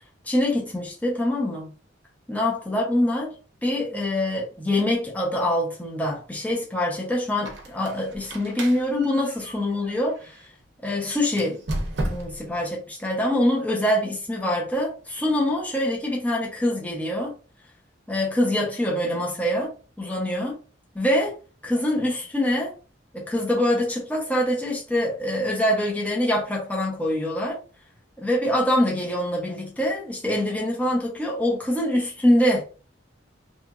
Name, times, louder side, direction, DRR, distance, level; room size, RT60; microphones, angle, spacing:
voice 1, 0.2-1.7 2.3-3.4 3.6-10.5 10.8-11.6 12.0-17.3 18.1-20.5 21.0-21.3 21.6-22.8 23.1-27.6 28.2-32.6, left 1 dB, 10° left, 0.7 m, -24 dB
Squeak, 7.3-10.5 11.3-12.6, right 1 dB, 60° right, 0.7 m, -34 dB
2.9 x 2.5 x 2.3 m
head